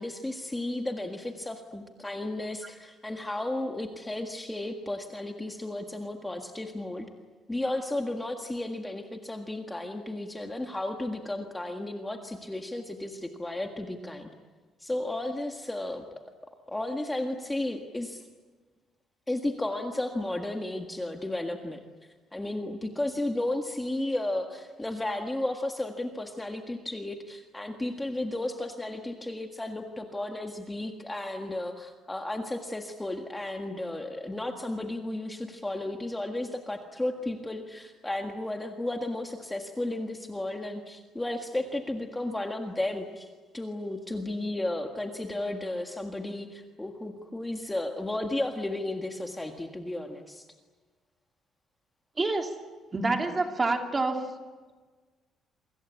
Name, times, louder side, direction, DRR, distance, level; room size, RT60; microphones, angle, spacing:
voice 1, 0.0-7.1 7.5-14.3 14.8-16.0 16.7-18.2 19.3-21.8 22.3-43.3 43.5-50.4, left 1 dB, 10° left, 3 dB, 1.7 m, -33 dB
voice 2, 52.2-52.5 52.9-54.3, right 3 dB, 20° right, 3 dB, 2.9 m, -27 dB
27.5 x 25.0 x 8.4 m, 1.4 s
cardioid pair, 155°, 0 cm